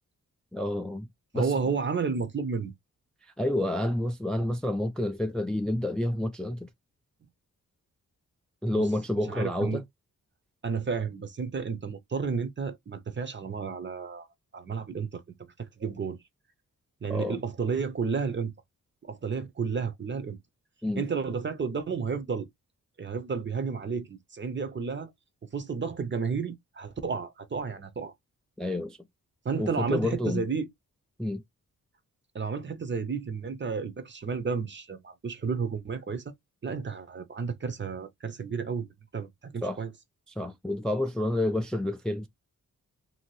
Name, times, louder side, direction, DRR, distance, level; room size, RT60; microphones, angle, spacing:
voice 1, 0.5-1.1 1.3-1.5 3.4-6.7 8.6-9.8 17.1-17.4 20.8-21.0 28.6-29.0 29.6-30.5 31.2-31.4 39.6-39.8 40.4-42.3, left 1 dB, ahead, 0.4 m, -29 dB
voice 2, 1.3-2.7 8.7-8.9 9.3-9.8 10.6-14.3 14.5-15.2 15.6-16.2 17.0-18.5 19.0-20.4 21.0-22.5 23.0-25.1 25.4-28.1 29.4-30.7 32.3-36.3 36.6-38.9 39.1-39.9, right 5 dB, 35° right, 0.7 m, -32 dB
2.7 x 2.5 x 3.0 m
cardioid pair, 70°, 32 cm